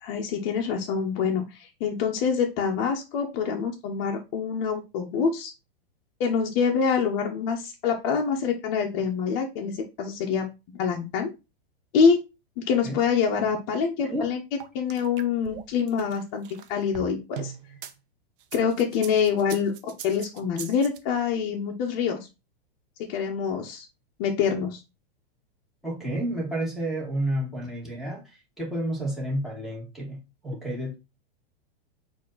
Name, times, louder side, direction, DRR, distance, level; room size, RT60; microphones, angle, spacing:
voice 1, 0.0-5.5 6.2-10.5 10.7-11.3 11.9-12.2 12.6-17.5 18.5-22.2 23.0-23.8 24.2-24.8, left 6 dB, 45° left, 1 dB, 1.0 m, -26 dB
sound 1, 14.6-17.9 18.4-21.0, right 9 dB, 60° right, 0.8 m, -40 dB
voice 2, 25.8-28.2 28.6-30.2 30.4-30.9, right 1 dB, ahead, -5 dB, 2.3 m, -30 dB
4.3 x 2.9 x 4.0 m, 0.25 s
hypercardioid pair, 125°, 30 cm